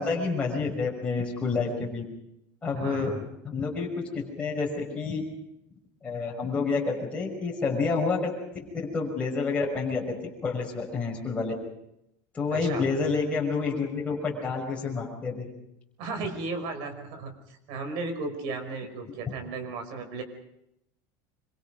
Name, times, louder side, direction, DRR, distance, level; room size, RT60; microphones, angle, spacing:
voice 1, 0.0-2.0 2.6-3.1 3.4-4.7 4.9-5.2 6.0-8.3 8.9-10.2 10.4-11.5 12.3-15.5, left 4 dB, 15° left, -3 dB, 6.0 m, -28 dB
voice 2, 2.7-3.2 12.5-12.8 16.0-20.2, right 3 dB, 65° right, 6 dB, 5.6 m, -35 dB
27.0 x 25.5 x 5.3 m, 0.81 s
cardioid pair, 150°, 9 cm